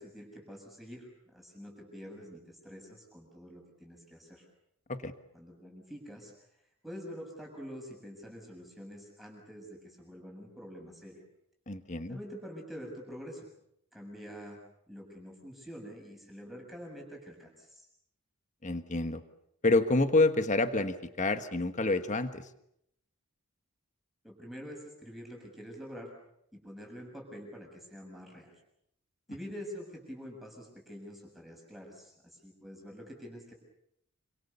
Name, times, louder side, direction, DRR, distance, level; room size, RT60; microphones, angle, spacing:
voice 1, 0.0-4.5 5.3-11.2 12.1-13.5 13.9-14.6 14.9-17.9 24.2-26.1 26.5-28.6 29.3-33.5, equal, ahead, -1 dB, 7.2 m, -46 dB
voice 2, 11.7-12.2 18.6-19.2 19.6-22.5, left 2 dB, 35° left, 9 dB, 1.5 m, -28 dB
28.5 x 26.5 x 6.9 m, 0.76 s
head